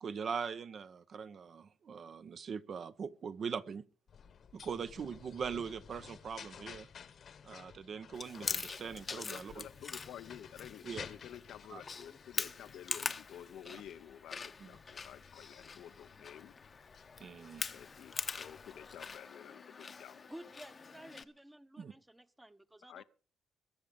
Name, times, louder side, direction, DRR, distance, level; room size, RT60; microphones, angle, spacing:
voice 1, 0.0-3.8 4.5-6.9 7.4-9.6 10.8-11.1 11.7-11.8 14.6-14.7 17.2-17.7 21.8-21.9, right 6 dB, 50° right, 0.9 m, -41 dB
sound 1, 4.1-19.2, left 7 dB, 55° left, 1.2 m, -54 dB
Chewing mastication, 8.1-21.2, left 5 dB, 35° left, 0.8 m, -44 dB
voice 2, 9.1-16.6 17.7-20.3 22.9-23.0, left 10 dB, 80° left, 0.7 m, -51 dB
voice 3, 20.3-23.0, right 1 dB, 10° right, 0.9 m, -53 dB
21.5 x 7.2 x 5.2 m
cardioid pair, 90°, 0 cm